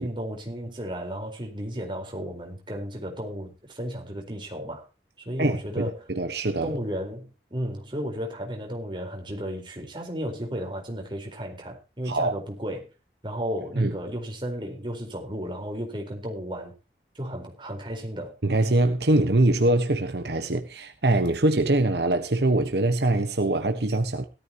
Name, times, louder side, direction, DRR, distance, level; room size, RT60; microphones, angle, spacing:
voice 1, 0.0-4.9 5.2-6.1 6.6-12.9 13.2-16.7 17.1-18.4, equal, 25° right, 4.3 m, -34 dB
voice 2, 5.4-6.7 12.1-12.3 13.8-13.9 18.4-24.3, right 2 dB, 70° right, 1.3 m, -23 dB
17.0 x 13.5 x 3.0 m
head